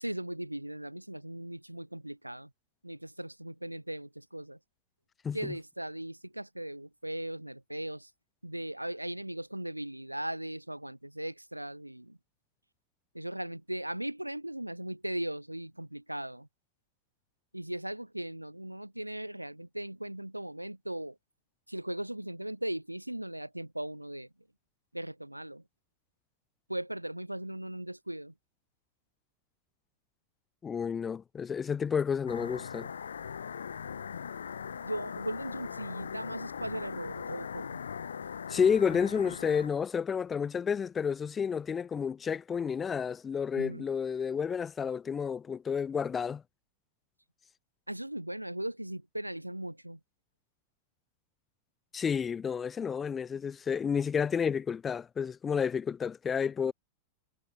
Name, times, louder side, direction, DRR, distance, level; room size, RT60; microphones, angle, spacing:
voice 1, 0.0-2.5 2.8-4.6 5.3-8.1 8.4-12.2 13.1-16.5 17.5-21.2 21.7-24.3 24.9-25.6 26.7-28.3 34.8-37.8 43.6-43.9 47.9-50.0, right 1 dB, 85° right, 1.3 m, -38 dB
voice 2, 30.6-32.9 38.5-46.4 51.9-56.7, left 7 dB, 20° left, 0.8 m, -30 dB
sound 1, 32.3-39.7, left 7 dB, 70° left, 1.2 m, -40 dB
figure-of-eight pair, 90°, 0 cm